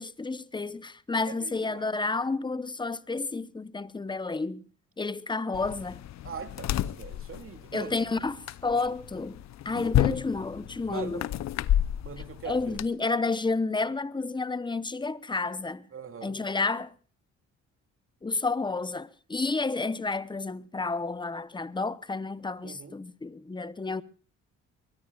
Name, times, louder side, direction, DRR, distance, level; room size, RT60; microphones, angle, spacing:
voice 1, 0.0-4.6 5.0-6.0 7.7-9.4 9.6-11.2 12.4-15.9 16.2-16.9 18.2-24.0, left 3 dB, 15° left, 0.8 m, -31 dB
voice 2, 1.2-1.9 6.2-8.1 10.9-11.2 12.0-12.8 15.9-16.4 22.6-23.0, right 6 dB, 45° right, 2.4 m, -41 dB
sound 1, 5.5-12.9, left 12 dB, 60° left, 0.7 m, -31 dB
23.5 x 19.5 x 2.4 m
cardioid pair, 90°, 30 cm